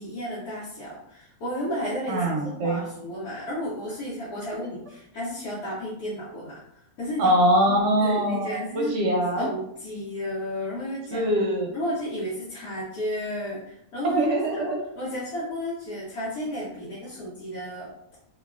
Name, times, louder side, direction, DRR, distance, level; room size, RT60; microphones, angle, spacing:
voice 1, 0.0-6.6 7.0-7.4 7.7-8.9 9.4-11.3 11.7-14.2 14.5-14.6 15.0-17.9, equal, 85° left, -8 dB, 1.3 m, -32 dB
voice 2, 2.1-2.8 7.2-9.5 11.1-11.7 14.0-14.8, right 1 dB, 65° right, 0 dB, 0.8 m, -23 dB
3.3 x 2.3 x 2.3 m, 0.77 s
omnidirectional pair, 1.6 m